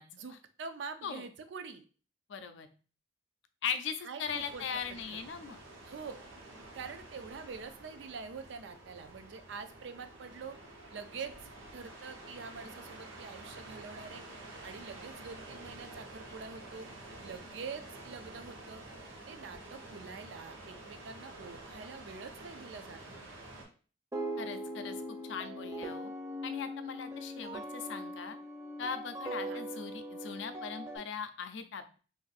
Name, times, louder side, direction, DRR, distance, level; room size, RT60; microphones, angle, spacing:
voice 1, 0.1-1.8 4.0-5.2 5.9-6.2 6.7-10.6 10.9-11.3 11.7-14.2 14.6-16.9 17.2-18.8 19.3-23.3 29.5-29.6, right 5 dB, 70° right, 9 dB, 0.4 m, -45 dB
voice 2, 2.3-2.7 3.6-5.6 24.4-26.1 26.4-28.4 28.8-32.0, left 6 dB, 75° left, 9 dB, 0.4 m, -39 dB
sound 1, 4.2-23.7, right 2 dB, 90° right, 1.1 m, -49 dB
sound 2, 24.1-31.0, equal, 15° right, 0.5 m, -40 dB
2.6 x 2.5 x 4.0 m, 0.38 s
head